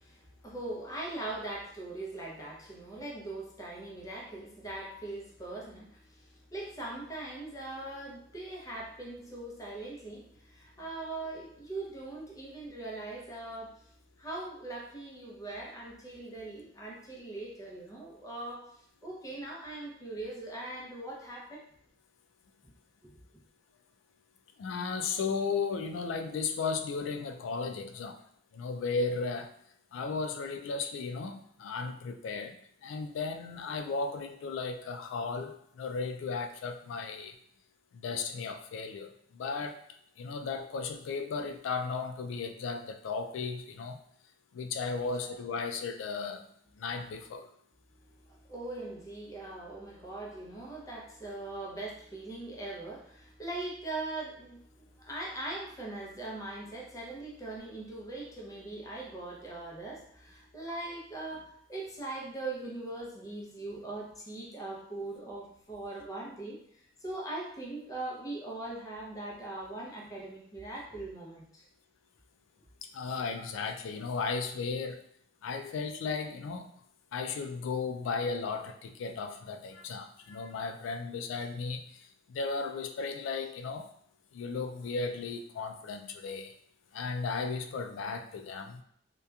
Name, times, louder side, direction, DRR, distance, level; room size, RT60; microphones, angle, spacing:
voice 1, 0.0-6.2 6.5-13.7 14.2-18.7 19.0-21.6 45.1-45.3 48.4-54.6 55.0-66.6 67.0-71.6 73.4-73.5, right 2 dB, 20° left, -3 dB, 0.6 m, -41 dB
voice 2, 24.6-28.2 28.5-29.5 29.9-32.6 32.8-37.3 37.9-39.8 40.2-44.0 44.5-46.4 46.8-47.5 72.8-75.0 75.4-76.7 77.1-83.9 84.3-86.5 86.9-88.8, left 4 dB, 90° left, 6 dB, 0.3 m, -35 dB
2.7 x 2.2 x 2.3 m, 0.68 s
head